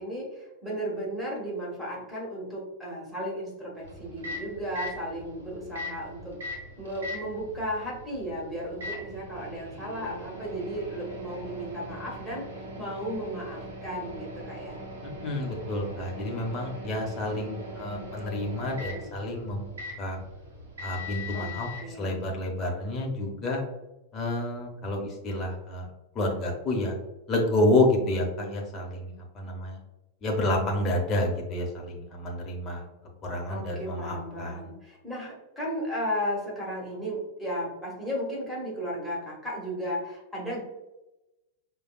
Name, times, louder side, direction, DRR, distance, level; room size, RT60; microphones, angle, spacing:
voice 1, 0.0-14.8 21.3-22.2 33.5-40.6, equal, ahead, -6 dB, 1.4 m, -35 dB
Microwave oven, 3.8-21.8, left 1 dB, 65° right, 0.9 m, -40 dB
voice 2, 15.0-19.7 20.0-20.2 20.8-21.7 22.0-23.6 24.1-25.9 26.1-26.9 27.3-29.8 30.2-32.9 33.2-34.6, left 1 dB, 30° left, 0 dB, 0.8 m, -29 dB
4.9 x 2.2 x 2.3 m, 0.97 s
figure-of-eight pair, 90°, 0 cm